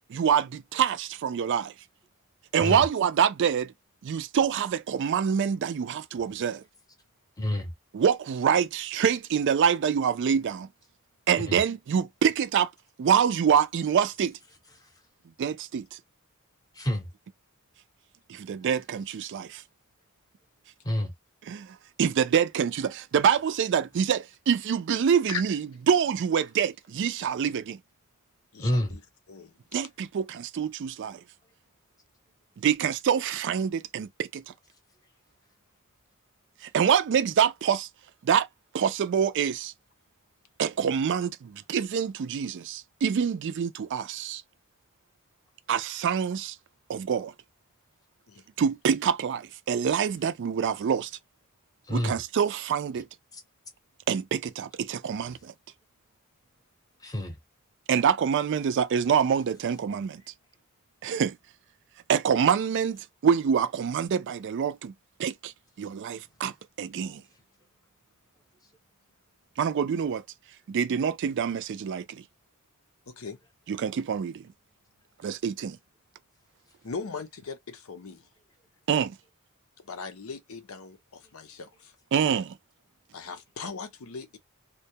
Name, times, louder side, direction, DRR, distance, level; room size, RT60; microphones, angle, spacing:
voice 1, 0.1-1.7 2.5-3.7 4.0-6.6 7.9-10.7 11.3-12.7 13.0-14.4 15.4-16.0 18.3-19.6 21.5-27.8 29.7-31.2 32.6-34.5 36.6-37.9 38.2-38.5 38.7-39.7 40.6-44.4 45.7-46.6 46.9-47.3 48.6-51.1 51.9-53.1 54.1-55.5 57.9-60.2 61.0-61.4 62.1-64.9 65.2-65.5 65.8-67.2 69.6-70.2 70.7-72.2 73.7-74.5 75.2-75.8 78.9-79.2 82.1-82.5, right 7 dB, 60° right, 0.3 m, -26 dB
voice 2, 7.4-7.7 11.5-11.6 16.8-17.1 20.8-21.1 28.6-29.0 51.9-52.2 57.0-57.4, left 1 dB, 15° left, 0.7 m, -28 dB
voice 3, 28.5-29.0 29.3-29.5 48.3-48.4 73.1-73.4 76.8-78.3 79.8-82.0 83.1-84.4, left 5 dB, 80° left, 0.6 m, -39 dB
2.2 x 2.1 x 2.7 m
head